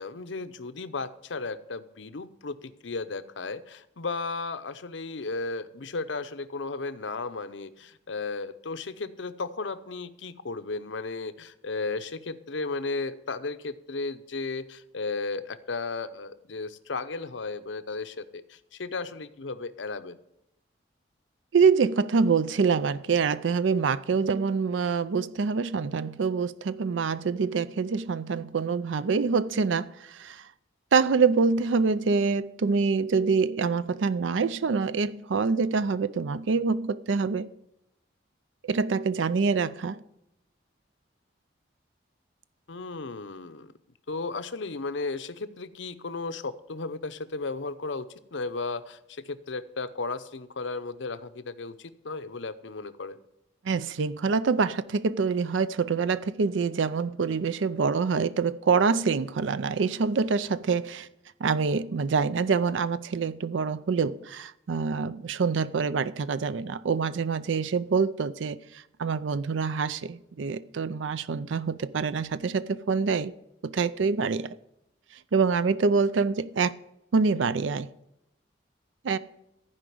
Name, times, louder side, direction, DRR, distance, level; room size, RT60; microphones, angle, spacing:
voice 1, 0.0-20.2 42.7-43.7 44.1-53.2, left 3 dB, 75° left, 0.7 m, -35 dB
voice 2, 21.5-30.5 30.9-37.5 38.6-40.0 53.6-61.1 61.4-73.3 73.6-74.5 75.3-76.7 77.1-77.9 79.0-79.2, right 5 dB, 80° right, 0.5 m, -26 dB
15.0 x 5.0 x 9.3 m
head